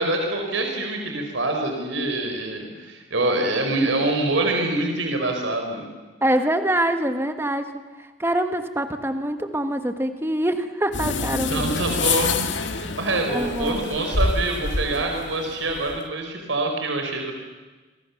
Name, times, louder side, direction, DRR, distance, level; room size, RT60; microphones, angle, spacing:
voice 1, 0.0-5.9 11.5-12.3 12.7-17.3, right 2 dB, 80° right, 3 dB, 4.5 m, -25 dB
voice 2, 6.2-7.7 8.2-11.7 13.3-13.8, right 1 dB, 10° right, 7 dB, 1.5 m, -24 dB
sound 1, 10.9-16.1, left 4 dB, 75° left, 1.9 m, -27 dB
27.5 x 24.0 x 7.1 m, 1.3 s
head